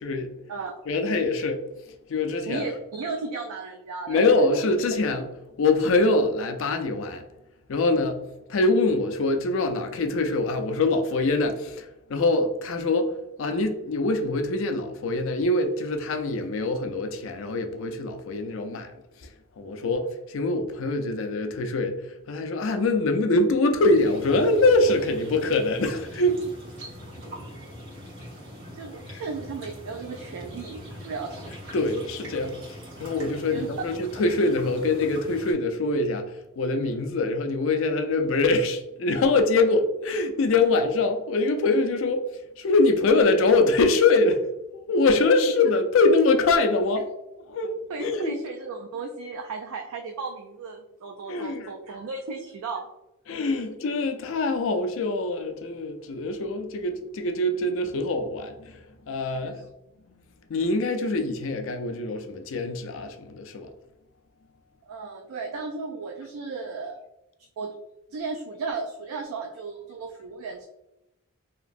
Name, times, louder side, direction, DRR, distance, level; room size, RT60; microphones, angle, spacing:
voice 1, 0.0-0.4 0.9-1.6 2.1-2.7 4.1-5.3 5.6-7.3 7.7-8.2 8.5-13.1 13.4-18.9 19.6-26.4 29.1-29.2 31.7-32.6 33.0-42.3 42.6-44.4 44.7-47.1 47.5-48.4 51.3-51.7 53.3-58.8 59.1-59.6 60.5-63.7, left 2 dB, 65° left, 0.4 m, -24 dB
voice 2, 2.5-4.6 27.2-27.5 28.8-31.5 33.5-33.7 45.4-45.5 47.9-52.9 59.4-59.5 64.8-67.0 67.6-67.7 68.1-70.7, right 4 dB, 80° right, 0.3 m, -35 dB
sound 1, 23.8-35.5, equal, 65° right, 1.1 m, -42 dB
2.9 x 2.4 x 2.5 m
head